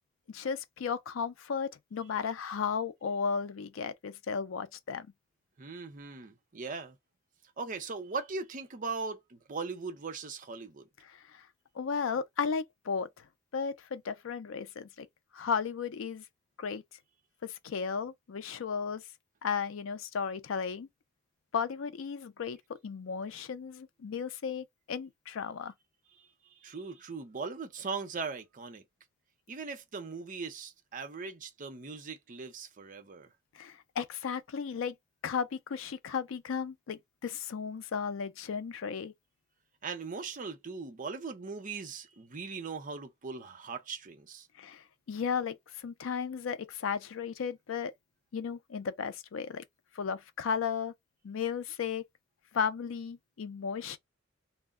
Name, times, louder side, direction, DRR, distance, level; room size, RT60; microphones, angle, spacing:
voice 1, 0.3-5.1 11.0-11.5 11.7-13.2 13.5-15.1 15.3-16.2 16.6-16.8 17.4-19.0 19.4-20.9 21.5-22.6 22.8-25.7 33.5-35.0 35.2-39.1 44.6-47.9 48.3-49.6 49.9-50.9 51.2-52.0 52.5-54.0, left 6 dB, 75° left, 0.4 m, -35 dB
voice 2, 5.6-7.0 7.6-10.9 26.6-28.8 29.5-33.3 39.8-44.5, right 4 dB, 40° right, 0.6 m, -39 dB
2.2 x 2.0 x 3.5 m
head